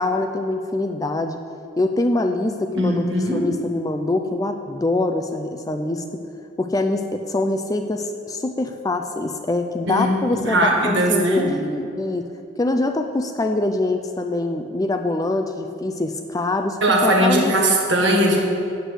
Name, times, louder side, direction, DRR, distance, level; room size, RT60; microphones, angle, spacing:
voice 1, 0.0-1.4 1.8-6.0 6.6-12.3 12.6-17.5, left 2 dB, 15° left, 6 dB, 0.3 m, -24 dB
voice 2, 2.8-3.5 9.9-11.5 16.8-18.4, right 1 dB, 60° right, 0 dB, 1.7 m, -19 dB
8.0 x 8.0 x 6.5 m, 2.5 s
head